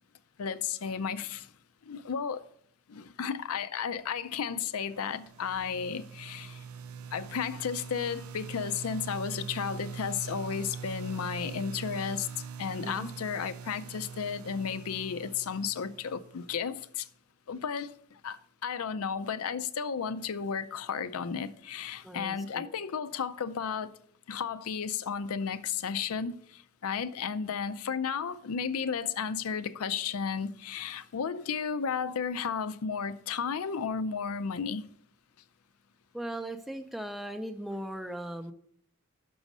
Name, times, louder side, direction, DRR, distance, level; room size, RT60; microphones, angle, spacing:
voice 1, 0.4-1.5 1.9-2.5 2.9-6.6 7.1-12.3 12.6-17.1 17.5-17.9 18.2-23.9 24.3-34.8, left 6 dB, 80° left, 0.5 m, -33 dB
sound 1, 4.8-16.6, right 6 dB, 75° right, 0.4 m, -43 dB
voice 2, 22.0-22.7 36.1-38.5, right 1 dB, ahead, 0.4 m, -38 dB
6.2 x 6.1 x 5.3 m
head